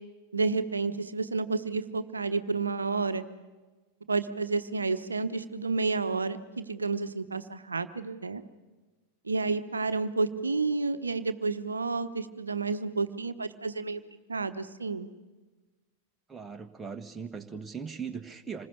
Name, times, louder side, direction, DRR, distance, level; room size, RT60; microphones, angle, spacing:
voice 1, 0.3-3.2 4.1-8.4 9.2-14.0 14.3-15.1, right 4 dB, 75° right, 11 dB, 0.9 m, -30 dB
voice 2, 16.3-18.7, right 6 dB, 10° right, 5 dB, 1.5 m, -39 dB
27.0 x 20.5 x 6.9 m, 1.3 s
figure-of-eight pair, 90°, 0 cm